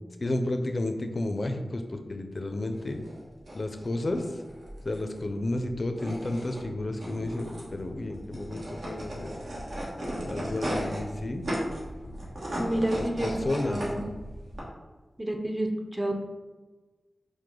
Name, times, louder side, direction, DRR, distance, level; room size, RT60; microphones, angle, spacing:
voice 1, 0.2-3.0 3.5-4.3 4.8-9.4 10.3-11.5 13.0-13.8, left 2 dB, 50° left, 6 dB, 0.4 m, -32 dB
sound 1, 2.7-14.6, equal, 75° right, 1.1 m, -36 dB
voice 2, 12.6-13.4 13.6-14.0 15.2-16.2, right 1 dB, 15° right, 2 dB, 0.5 m, -29 dB
4.8 x 2.1 x 3.6 m, 1.3 s
cardioid pair, 55°, 0 cm